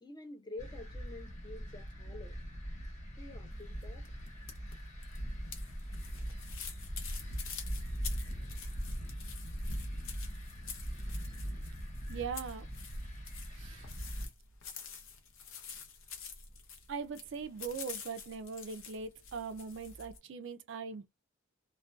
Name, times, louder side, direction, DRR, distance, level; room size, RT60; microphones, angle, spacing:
voice 1, 0.0-2.4 3.2-4.1, left 2 dB, 20° left, 0.5 m, -48 dB
sound 1, 0.6-14.3, equal, 35° left, 1.0 m, -41 dB
sound 2, 3.5-20.2, left 6 dB, 70° left, 0.7 m, -48 dB
voice 2, 12.1-12.7 13.6-13.8 16.9-21.1, right 5 dB, 60° right, 0.4 m, -41 dB
2.4 x 2.2 x 2.2 m
head